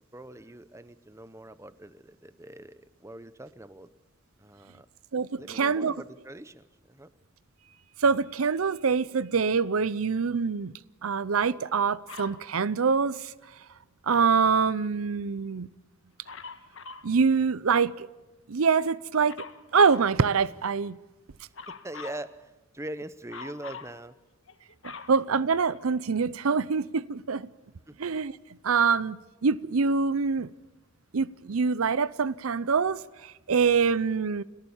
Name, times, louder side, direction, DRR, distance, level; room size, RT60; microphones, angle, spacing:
voice 1, 0.1-3.9 4.4-4.9 5.4-7.1 21.7-24.1 27.9-28.0, right 1 dB, 15° right, 0.7 m, -42 dB
voice 2, 5.1-5.9 8.0-10.7 11.0-13.3 14.1-15.7 17.0-18.1 18.5-19.4 19.7-21.0 25.1-27.5 28.0-28.3 28.6-30.5 31.1-34.4, right 5 dB, 90° right, 0.6 m, -25 dB
Dog, 12.1-12.4 16.3-17.1 19.3-20.1 21.5-22.3 23.3-23.9 24.5-26.0 26.7-26.8, left 4 dB, 65° left, 1.5 m, -43 dB
29.5 x 13.5 x 7.2 m
head